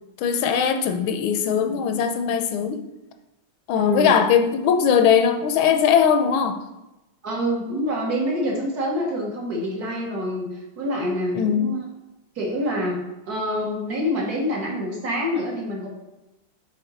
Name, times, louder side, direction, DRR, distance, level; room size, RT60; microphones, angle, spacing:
voice 1, 0.2-2.8 3.7-6.6 11.3-11.8, left 7 dB, 85° left, 6 dB, 1.4 m, -20 dB
voice 2, 3.7-4.1 7.2-11.8 12.3-13.0 13.3-15.9, equal, 55° right, -2 dB, 1.6 m, -26 dB
5.9 x 4.7 x 3.9 m, 0.98 s
omnidirectional pair, 2.2 m